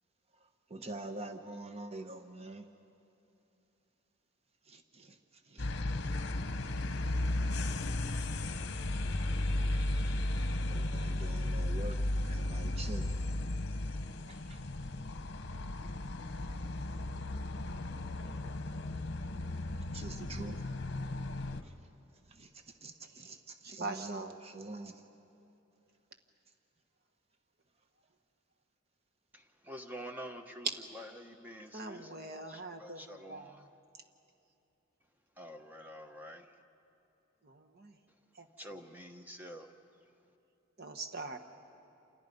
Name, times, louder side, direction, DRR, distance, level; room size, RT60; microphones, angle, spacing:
voice 1, 0.7-2.6 4.7-5.2 5.5-5.7 6.0-6.1 10.6-12.0 12.2-13.1 14.3-14.6 19.9-20.6 22.3-22.5 22.8-24.9, right 2 dB, 30° right, 6 dB, 1.1 m, -45 dB
sound 1, 5.6-21.6, left 1 dB, 55° left, 1.0 m, -35 dB
voice 2, 23.6-24.4 31.7-33.7 33.9-34.0 37.4-38.0 38.3-38.5 40.8-41.4, right 3 dB, 50° right, 5 dB, 1.4 m, -43 dB
voice 3, 29.3-30.7 30.9-32.1 32.5-33.6 35.4-36.5 38.6-39.7, equal, 10° right, 5 dB, 1.1 m, -47 dB
28.5 x 28.0 x 5.4 m, 2.8 s
head